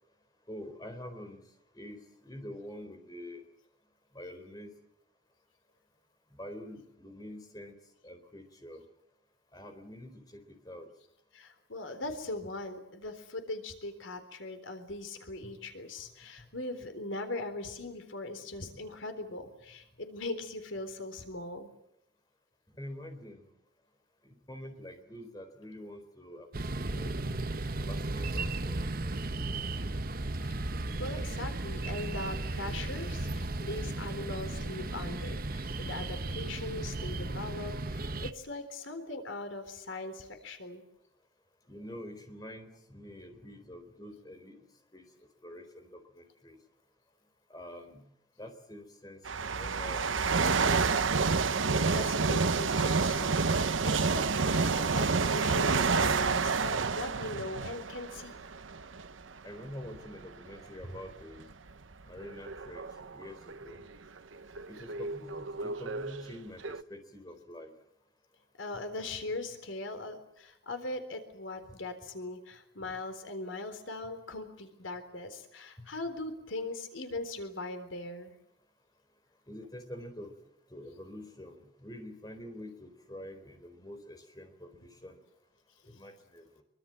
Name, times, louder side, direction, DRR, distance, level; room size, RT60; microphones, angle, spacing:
voice 1, 0.5-1.4 1.7-3.4 4.1-4.7 6.3-7.7 8.0-8.8 9.5-10.9 15.4-15.5 16.4-16.5 22.8-23.5 24.2-26.5 26.8-27.1 27.8-29.9 41.7-44.6 44.9-45.0 45.4-46.6 47.5-48.0 48.4-49.2 49.5-51.1 59.4-61.5 62.1-62.9 63.1-63.8 64.7-67.7 68.7-68.8 71.7-71.8 75.8-75.9 79.5-80.3 80.7-85.2 85.9-86.6, left 1 dB, 20° left, 7 dB, 4.1 m, -46 dB
voice 2, 11.3-21.7 31.0-40.8 51.3-58.4 68.6-78.3, left 2 dB, 90° left, 8 dB, 3.8 m, -40 dB
sound 1, 26.5-38.3, right 2 dB, 50° right, 1.1 m, -35 dB
sound 2, 49.3-59.2 59.8-60.1 60.8-63.8 64.6-66.3 66.6-66.8, right 4 dB, 90° right, 0.9 m, -29 dB
25.0 x 24.0 x 7.7 m, 0.78 s
head